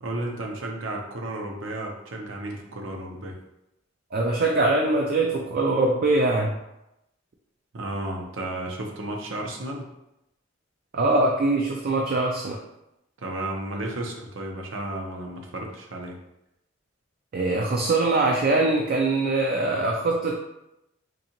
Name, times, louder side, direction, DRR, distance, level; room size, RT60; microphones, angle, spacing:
voice 1, 0.0-3.4 7.7-9.9 13.2-16.1, right 1 dB, 75° right, 1 dB, 0.7 m, -33 dB
voice 2, 4.1-6.6 10.9-12.6 17.3-20.4, right 2 dB, 50° right, 0 dB, 0.4 m, -22 dB
3.9 x 2.8 x 2.9 m, 0.87 s
head